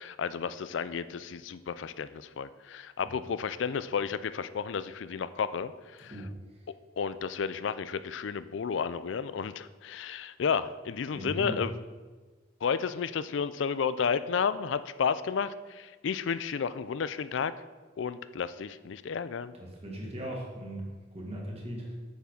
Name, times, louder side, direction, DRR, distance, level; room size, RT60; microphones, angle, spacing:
voice 1, 0.0-5.7 6.0-6.1 7.0-11.7 12.6-17.5 18.0-19.5, left 6 dB, 70° left, 14 dB, 0.4 m, -32 dB
voice 2, 11.1-11.6 19.6-21.9, equal, 30° right, -2 dB, 2.2 m, -38 dB
8.2 x 5.8 x 6.3 m, 1.3 s
head